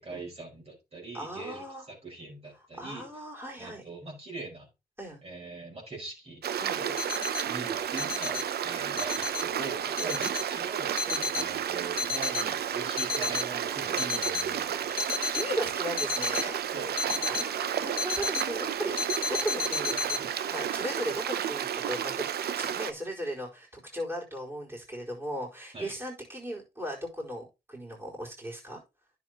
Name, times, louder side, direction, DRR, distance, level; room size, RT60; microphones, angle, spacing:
voice 1, 0.0-3.1 3.6-4.7 5.2-6.4 6.7-7.0 7.5-11.0 11.3-15.0 16.7-17.3 25.7-25.9, right 3 dB, 40° right, 5.0 m, -41 dB
voice 2, 1.1-1.8 2.6-3.8 5.0-5.2 6.6-6.8 10.0-10.2 11.1-11.3 15.0-16.6 17.3-19.0 19.3-22.2 22.6-28.8, equal, 15° right, 4.4 m, -37 dB
Stream, 6.4-22.9, right 9 dB, 85° right, 0.6 m, -32 dB
sound 1, 7.0-7.4 8.0-8.4 9.0-9.4 10.0-10.4 11.0-11.4 12.0-12.4 13.0-13.4 14.0-14.4 15.0-15.4 16.0-16.4 17.0-17.4 18.0-18.4 19.0-20.2, left 5 dB, 70° left, 0.8 m, -31 dB
10.0 x 7.3 x 2.9 m
cardioid pair, 60°, 16 cm